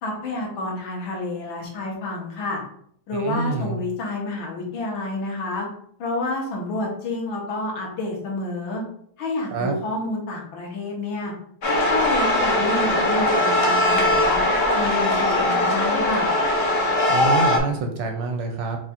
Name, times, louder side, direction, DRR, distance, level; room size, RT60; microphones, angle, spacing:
voice 1, 0.0-2.6 3.1-5.7 6.0-8.8 9.2-11.3 11.7-14.4 14.7-16.3, left 2 dB, 70° left, -1 dB, 1.8 m, -29 dB
voice 2, 3.2-3.8 9.5-9.7 17.1-18.8, right 3 dB, 75° right, 4 dB, 1.2 m, -26 dB
sound 1, 11.6-17.6, left 1 dB, 90° left, 0.5 m, -20 dB
4.9 x 2.4 x 4.2 m, 0.65 s
omnidirectional pair, 2.3 m